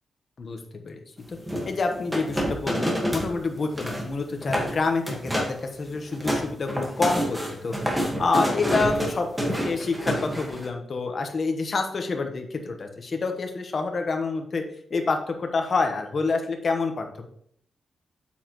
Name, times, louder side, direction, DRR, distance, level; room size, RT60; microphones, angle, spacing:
voice 1, 0.4-1.0 1.3-1.4 1.6-7.8 8.2-14.6 14.9-17.2, left 4 dB, 40° left, 4 dB, 1.1 m, -27 dB
sound 1, 1.5-3.3 3.6-4.1 4.4-4.7 5.1-5.6 6.0-10.7, equal, 5° right, 1.6 m, -28 dB
8.5 x 7.4 x 3.1 m, 0.65 s
wide cardioid pair, 175°, 0 cm